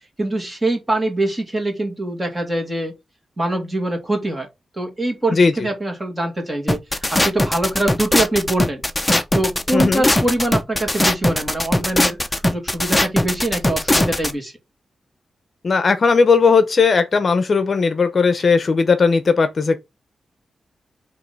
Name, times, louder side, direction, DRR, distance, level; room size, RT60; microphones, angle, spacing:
voice 1, 0.2-2.9 3.4-4.5 4.8-6.8 7.1-8.8 9.3-14.5, right 1 dB, 20° right, 2.4 m, -23 dB
sound 1, 6.7-14.3, left 1 dB, 15° left, 0.8 m, -19 dB
voice 2, 9.7-10.1 15.6-19.8, left 4 dB, 45° left, 0.8 m, -16 dB
7.8 x 3.2 x 4.0 m
wide cardioid pair, 130°, 0 cm